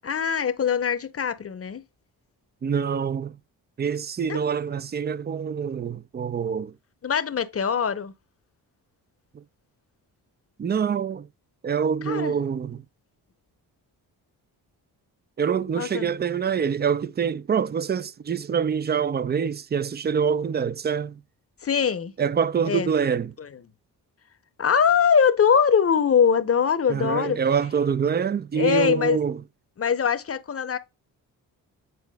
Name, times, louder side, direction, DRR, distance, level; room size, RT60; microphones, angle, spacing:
voice 1, 0.0-1.8 4.3-4.4 7.0-8.1 12.1-12.4 15.8-16.1 21.6-22.1 22.7-22.9 23.4-23.5 24.6-27.4 28.6-29.2 29.8-30.8, left 7 dB, 35° left, 0.8 m, -22 dB
voice 2, 2.6-3.4 3.8-6.7 9.3-9.4 10.6-11.3 11.6-12.8 15.4-21.2 22.2-23.3 26.9-29.4, right 7 dB, 25° right, 0.4 m, -25 dB
9.3 x 4.6 x 2.3 m
cardioid pair, 70°, 41 cm